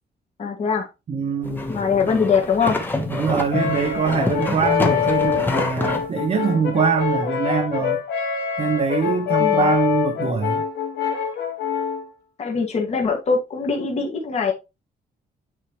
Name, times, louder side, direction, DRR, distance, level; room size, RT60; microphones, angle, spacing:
voice 1, 0.4-0.9 1.7-2.8 4.1-4.2 9.4-9.7 12.4-14.5, left 5 dB, 40° left, 1.8 m, -22 dB
voice 2, 1.1-1.6 3.1-8.0 8.6-10.6, right 5 dB, 35° right, 0.9 m, -23 dB
sound 1, 1.4-6.0, left 2 dB, 10° left, 1.1 m, -27 dB
Brass instrument, 3.5-12.1, left 8 dB, 80° left, 1.9 m, -25 dB
9.5 x 4.7 x 3.1 m
wide cardioid pair, 180°, 18 cm